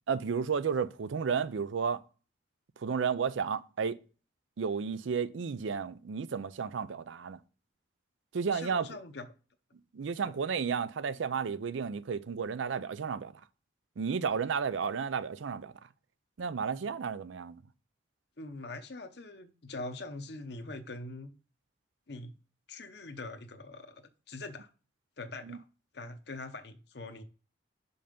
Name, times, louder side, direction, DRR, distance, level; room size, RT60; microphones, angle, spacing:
voice 1, 0.1-2.0 2.8-4.0 4.6-7.4 8.3-9.0 9.9-13.3 14.0-15.7 16.4-17.6 25.4-25.6, right 6 dB, 85° right, 0.5 m, -32 dB
voice 2, 8.5-9.3 10.2-10.3 18.4-21.3 22.1-22.3 22.7-24.7 25.2-25.6 25.9-27.2, left 2 dB, 60° left, 0.8 m, -43 dB
5.5 x 5.5 x 5.1 m
head